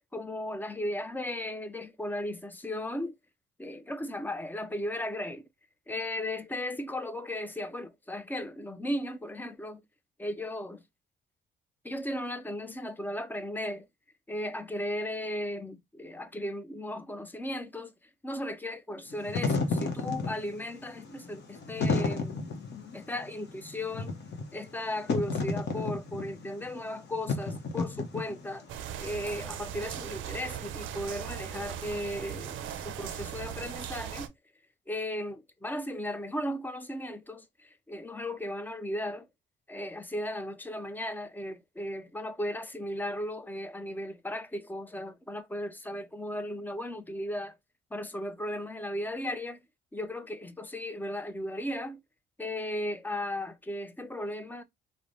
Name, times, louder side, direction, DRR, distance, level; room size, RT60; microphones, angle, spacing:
voice 1, 0.1-3.1 3.6-5.5 5.9-9.8 10.2-10.8 11.8-13.9 14.3-17.9 18.2-22.3 22.9-24.1 24.5-28.7 29.0-34.3 34.9-39.3 39.7-47.5 47.9-49.6 49.9-52.0 52.4-54.6, left 1 dB, 10° left, 0.4 m, -36 dB
Wind / Fire, 19.1-28.6, left 4 dB, 60° left, 0.8 m, -32 dB
sound 1, 28.7-34.3, right 9 dB, 75° right, 0.5 m, -38 dB
3.1 x 2.1 x 2.6 m
cardioid pair, 90°, 20 cm